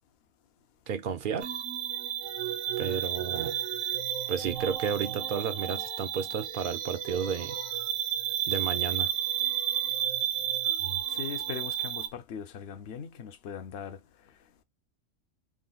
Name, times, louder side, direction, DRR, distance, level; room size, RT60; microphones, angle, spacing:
voice 1, 0.9-1.5 2.8-3.6 4.3-7.6 8.5-9.1, right 7 dB, 65° right, 0.5 m, -32 dB
sound 1, 1.4-12.1, right 10 dB, 85° right, 1.0 m, -32 dB
voice 2, 11.1-14.0, left 7 dB, 65° left, 0.8 m, -40 dB
3.7 x 2.2 x 3.8 m
omnidirectional pair, 1.3 m